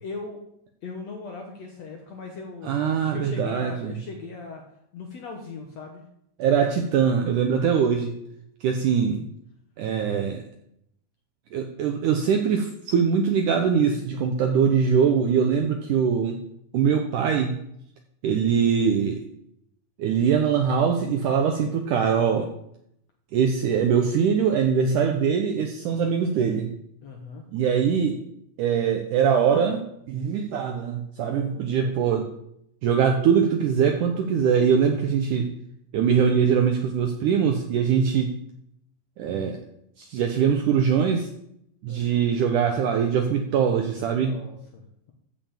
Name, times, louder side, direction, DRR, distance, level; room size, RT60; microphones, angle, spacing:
voice 1, 0.0-0.4 0.8-4.6 4.9-6.0 7.5-7.9 27.0-27.4 31.2-32.2 41.9-42.3 44.1-45.1, left 4 dB, 80° left, 2 dB, 1.5 m, -39 dB
voice 2, 2.7-3.9 6.4-8.1 8.6-9.2 9.8-10.4 11.5-16.4 16.7-17.6 18.2-19.2 20.0-22.5 23.3-26.7 27.5-28.2 28.6-29.8 30.1-32.3 32.8-35.5 35.9-38.3 39.2-39.6 40.0-41.3 41.8-44.3, right 7 dB, 85° right, 4 dB, 1.8 m, -22 dB
13.5 x 5.5 x 7.4 m, 0.76 s
omnidirectional pair, 4.9 m